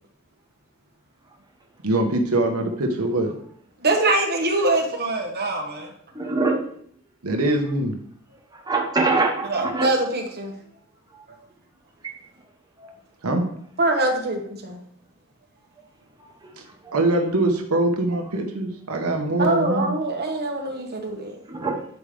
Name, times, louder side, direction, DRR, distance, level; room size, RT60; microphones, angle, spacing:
voice 1, 1.8-3.3 7.2-7.9 13.2-13.4 16.9-19.9, right 2 dB, 75° right, 1.2 m, -23 dB
voice 2, 3.8-5.9 9.5-10.5 11.3-11.4 13.8-14.6 19.4-21.3 21.6-21.7, right 2 dB, 50° right, 1.5 m, -23 dB
voice 3, 6.1-6.6 8.5-9.9 11.1-11.2 12.0-12.2 12.8-13.0 16.2-16.5 16.8-16.9 21.5-21.9, right 3 dB, 20° right, 1.0 m, -24 dB
9.4 x 5.0 x 3.4 m
head